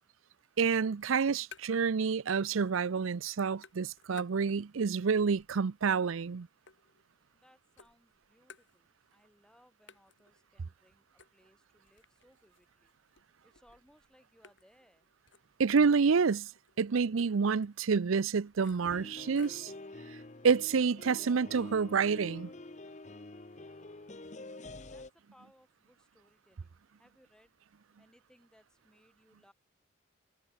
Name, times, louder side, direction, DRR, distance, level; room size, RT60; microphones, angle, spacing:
voice 1, 0.6-6.5 15.6-16.5 16.8-19.7 20.4-22.5, right 5 dB, 85° right, 0.5 m, -28 dB
Tin Can playing, 0.9-2.0 2.3-3.0 3.3-4.8 5.3-7.4 7.8-9.2 9.5-9.6 9.9-19.8, left 5 dB, 65° left, 3.7 m, -59 dB
voice 2, 7.3-12.9 13.4-15.1 24.8-27.5 28.0-29.5, equal, 5° left, 7.9 m, -66 dB
sound 1, 18.8-25.1, left 2 dB, 35° left, 0.8 m, -47 dB
head